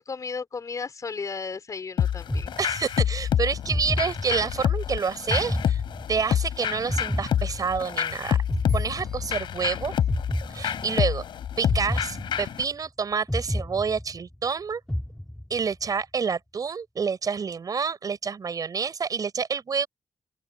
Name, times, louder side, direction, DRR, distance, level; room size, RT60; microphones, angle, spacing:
voice 1, 0.0-2.5, left 5 dB, 45° left, 4.7 m, -34 dB
sound 1, 2.0-12.6, left 9 dB, 80° left, 7.9 m, -28 dB
sound 2, 2.3-3.2 3.7-4.7 5.3-6.4 6.9-8.1 8.5-9.7 10.1-11.1 11.7-12.8 13.3-14.5 14.9-15.8, left 1 dB, 5° left, 2.5 m, -31 dB
voice 2, 2.6-5.8 6.1-8.4 8.7-9.9 10.5-11.2 11.6-14.8 15.5-19.9, right 5 dB, 50° right, 5.9 m, -28 dB
open air
cardioid pair, 95°, 8 cm